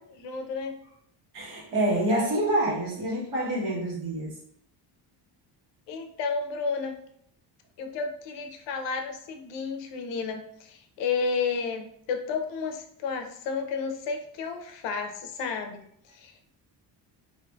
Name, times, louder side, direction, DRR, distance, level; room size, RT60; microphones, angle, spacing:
voice 1, 0.2-0.8 5.9-7.0 7.8-15.8 16.1-16.5, left 5 dB, 80° left, 5 dB, 0.5 m, -32 dB
voice 2, 1.3-4.3, right 1 dB, 65° right, -4 dB, 1.2 m, -27 dB
2.5 x 2.5 x 2.2 m, 0.67 s
cardioid pair, 145°, 43 cm